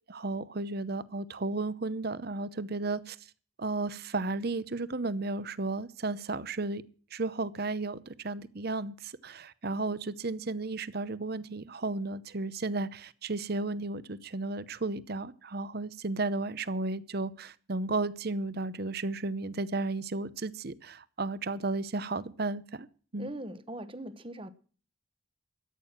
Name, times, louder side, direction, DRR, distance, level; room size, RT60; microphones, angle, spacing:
voice 1, 0.1-3.2 3.6-6.8 7.1-22.9 23.1-23.3, right 3 dB, 50° right, 0.8 m, -34 dB
voice 2, 23.2-24.5, right 1 dB, 25° right, 1.0 m, -40 dB
13.5 x 9.1 x 7.3 m
head